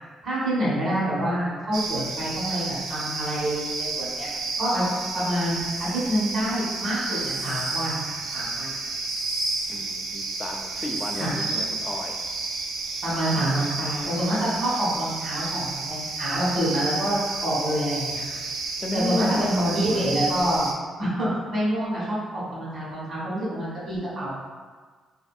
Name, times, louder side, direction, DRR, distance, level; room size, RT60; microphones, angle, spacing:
voice 1, 0.2-4.3 4.6-4.8 5.1-8.7 11.2-11.3 13.0-18.4 18.9-20.7 21.0-24.3, right 1 dB, 55° right, -7 dB, 1.2 m, -27 dB
sound 1, 1.7-20.7, right 3 dB, 90° right, 0.3 m, -31 dB
voice 2, 9.7-12.1 18.8-19.6, left 2 dB, 25° left, 1 dB, 0.3 m, -32 dB
2.6 x 2.6 x 2.3 m, 1.5 s
cardioid pair, 120°, 0 cm